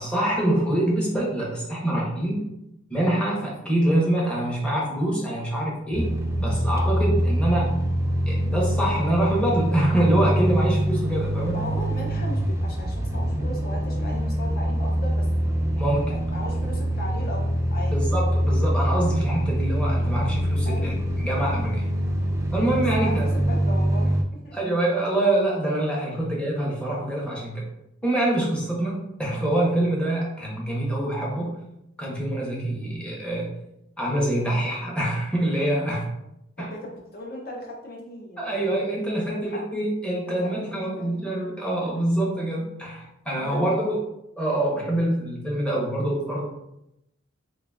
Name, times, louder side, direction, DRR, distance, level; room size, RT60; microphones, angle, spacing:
voice 1, 0.0-2.4 2.9-6.1 6.4-7.7 8.3-11.6 15.8-16.0 17.9-21.9 22.5-23.4 24.5-27.6 28.0-31.5 32.0-33.5 34.0-36.1 36.6-36.7 38.4-44.0 44.4-46.4, right 1 dB, 5° left, -4 dB, 0.9 m, -25 dB
sound 1, 5.9-24.2, equal, 15° right, 0.4 m, -24 dB
voice 2, 11.5-17.9 20.6-21.0 23.0-24.2 24.4-24.5 34.3-34.6 36.6-38.6 39.1-39.6 40.3-41.1 41.8-41.9 43.4-44.0, left 1 dB, 50° left, -1 dB, 0.6 m, -37 dB
3.8 x 3.1 x 2.3 m, 0.85 s
head